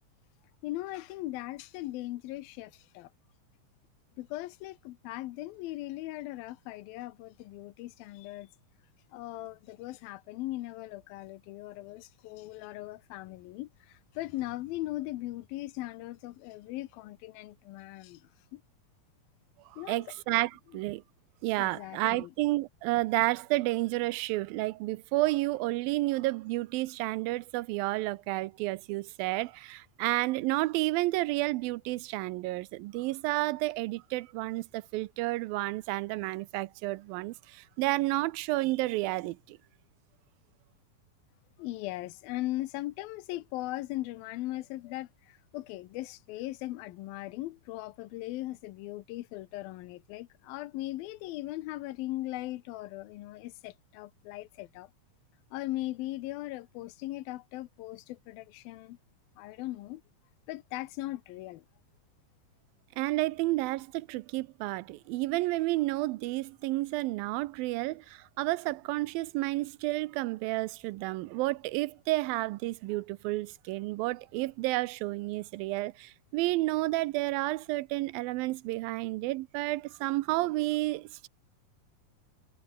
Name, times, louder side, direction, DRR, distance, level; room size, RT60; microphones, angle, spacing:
voice 1, 0.6-3.1 4.2-8.5 9.1-18.6 19.8-20.0 21.6-22.3 41.6-54.9 55.5-59.0 59.4-60.0 60.5-61.6, left 17 dB, 85° left, 2.7 m, -39 dB
voice 2, 19.7-21.0 21.4-39.6 63.0-81.3, right 19 dB, 85° right, 2.5 m, -31 dB
omnidirectional pair, 4.1 m